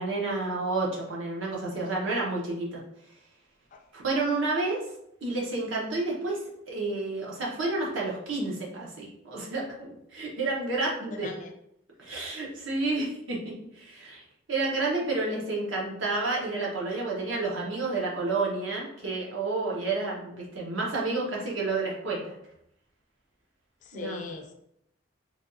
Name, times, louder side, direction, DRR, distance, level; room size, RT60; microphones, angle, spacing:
voice 1, 0.0-2.8 3.9-4.8 5.2-6.4 6.7-11.3 12.0-14.2 14.5-22.3 23.9-24.3, right 3 dB, 70° right, -3 dB, 0.8 m, -30 dB
voice 2, 11.1-11.5 12.1-12.2 23.8-24.5, left 5 dB, 40° left, 3 dB, 0.3 m, -40 dB
3.3 x 2.3 x 2.6 m, 0.77 s
head